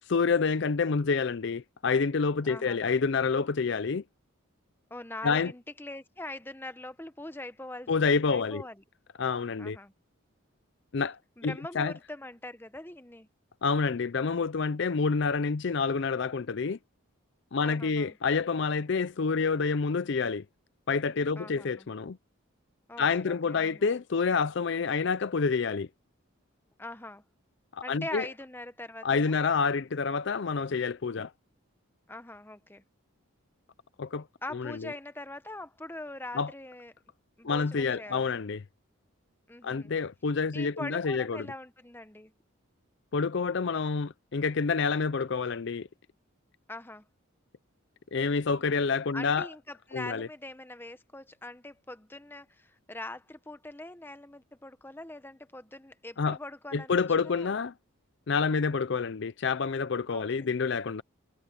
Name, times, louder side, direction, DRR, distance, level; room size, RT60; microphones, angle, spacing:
voice 1, 0.1-4.0 5.2-5.5 7.9-8.6 9.2-9.8 10.9-11.9 13.6-16.8 17.5-20.4 20.9-22.2 23.0-25.9 27.7-28.3 29.0-31.3 34.0-34.3 34.5-34.9 36.3-36.5 37.4-38.6 39.6-41.5 43.1-45.9 48.1-49.5 49.9-50.3 56.2-56.4 56.7-57.7 58.3-61.0, left 5 dB, 55° left, 0.5 m, -28 dB
voice 2, 2.4-2.9 4.9-7.9 8.3-8.8 9.6-9.9 11.4-13.3 17.6-18.2 21.4-21.9 22.9-23.9 26.8-27.2 27.8-29.4 32.1-32.8 34.4-36.9 37.4-38.3 39.5-39.9 40.5-42.3 46.7-47.1 49.1-56.9 57.2-57.6 60.1-60.5, left 2 dB, 10° left, 0.9 m, -42 dB
head